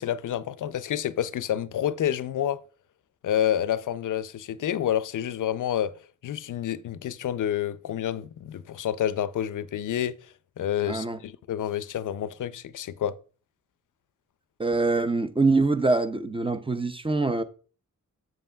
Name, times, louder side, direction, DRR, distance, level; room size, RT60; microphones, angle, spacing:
voice 1, 0.0-2.6 3.2-5.9 6.2-10.2 10.6-13.2, left 10 dB, 85° left, 0.4 m, -28 dB
voice 2, 10.9-11.2 14.6-17.4, right 3 dB, 15° right, 0.5 m, -24 dB
7.6 x 7.5 x 2.2 m
wide cardioid pair, 110°, 31 cm